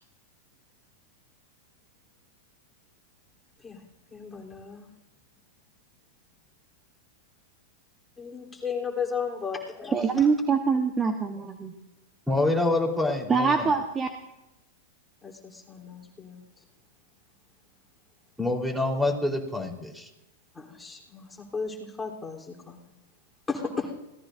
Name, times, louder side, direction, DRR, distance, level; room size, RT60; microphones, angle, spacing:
voice 1, 4.1-4.9 8.2-10.1 15.2-16.4 20.5-22.9 23.5-23.9, left 5 dB, 10° left, -1 dB, 3.6 m, -35 dB
voice 2, 9.9-11.7 13.3-14.1, right 5 dB, 20° right, 5 dB, 1.2 m, -24 dB
voice 3, 12.3-13.7 18.4-20.1, left 2 dB, 5° right, 2 dB, 4.0 m, -26 dB
26.5 x 17.5 x 2.7 m, 0.95 s
hypercardioid pair, 105°, 0 cm